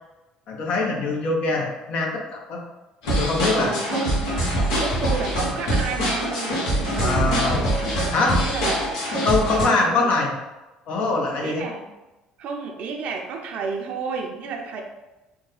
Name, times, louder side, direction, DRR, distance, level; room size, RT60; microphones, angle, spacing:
voice 1, 0.5-2.6 3.1-3.7 7.0-7.7 8.1-8.4 9.2-10.3 10.9-11.6, left 3 dB, 60° left, 1 dB, 0.8 m, -23 dB
sound 1, 3.0-9.6, equal, 85° left, 1.1 m, -24 dB
voice 2, 3.5-4.2 4.7-7.7 8.0-8.8 9.5-9.9 11.4-11.8 12.4-14.8, right 5 dB, 65° right, 3 dB, 0.6 m, -31 dB
3.5 x 2.2 x 3.2 m, 1.0 s
supercardioid pair, 70°, 2 cm